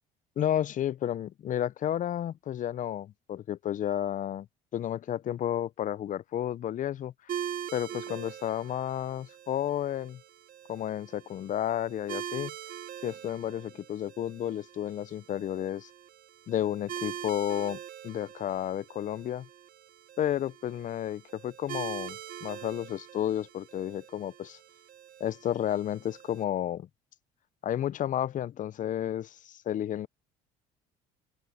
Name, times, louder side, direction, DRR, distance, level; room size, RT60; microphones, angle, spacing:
voice 1, 0.4-4.5 4.7-7.1 7.7-10.2 10.7-12.5 13.0-15.9 16.5-19.5 20.2-24.6 25.2-26.9 27.6-30.1, left 11 dB, 45° left, 0.7 m, -32 dB
sound 1, 7.3-26.4, right 10 dB, 50° right, 2.4 m, -43 dB
open air
supercardioid pair, 75°, 18 cm